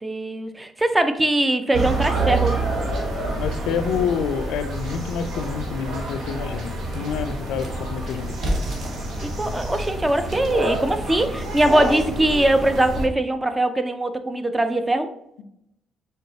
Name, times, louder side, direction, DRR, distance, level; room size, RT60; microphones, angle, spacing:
voice 1, 0.0-2.6 9.2-15.1, right 1 dB, 15° right, 8 dB, 0.5 m, -21 dB
sound 1, 1.7-13.1, right 2 dB, 85° right, 1.0 m, -28 dB
voice 2, 3.4-8.6, left 7 dB, 90° left, 8 dB, 0.4 m, -28 dB
sound 2, 6.5-11.9, equal, 60° right, 1.1 m, -33 dB
4.4 x 3.1 x 2.7 m, 0.77 s
cardioid pair, 90°, 0 cm